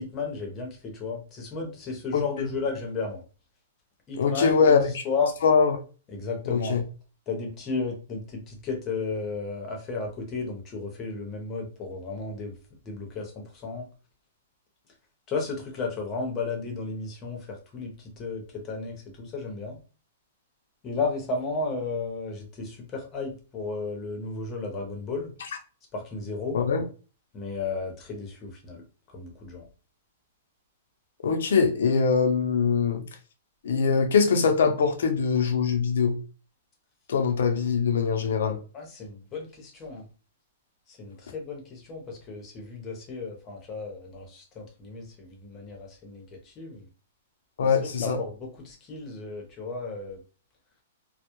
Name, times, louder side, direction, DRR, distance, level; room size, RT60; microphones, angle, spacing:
voice 1, 0.0-3.2 4.1-4.6 4.8-5.4 6.1-6.8 7.3-12.6 12.8-13.9 15.3-19.8 20.8-25.3 25.9-26.6 27.3-28.8 29.1-29.7 38.7-40.1 40.9-46.9 47.6-50.2, left 4 dB, 20° left, 0.7 m, -34 dB
voice 2, 4.2-4.9 5.4-5.7 6.5-6.8 26.5-26.8 31.2-33.0 33.6-36.2 37.1-38.6 47.6-48.2, left 5 dB, 75° left, 0.5 m, -22 dB
2.2 x 2.0 x 2.9 m
hypercardioid pair, 160°, 0 cm